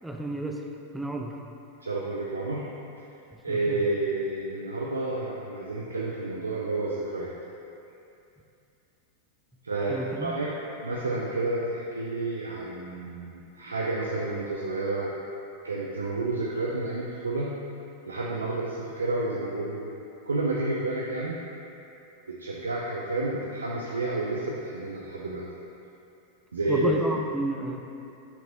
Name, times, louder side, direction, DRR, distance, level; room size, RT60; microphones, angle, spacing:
voice 1, 0.0-0.6 0.9-1.4 3.5-3.8 9.9-10.4 26.7-28.0, right 1 dB, 5° right, 2 dB, 0.5 m, -31 dB
voice 2, 1.8-2.6 3.4-7.3 9.6-10.5 10.8-15.1 15.6-17.5 18.1-19.9 20.2-21.4 22.3-25.4 26.5-26.9, right 2 dB, 75° right, -4 dB, 0.6 m, -30 dB
8.2 x 5.9 x 2.7 m, 2.7 s
figure-of-eight pair, 90°, 0 cm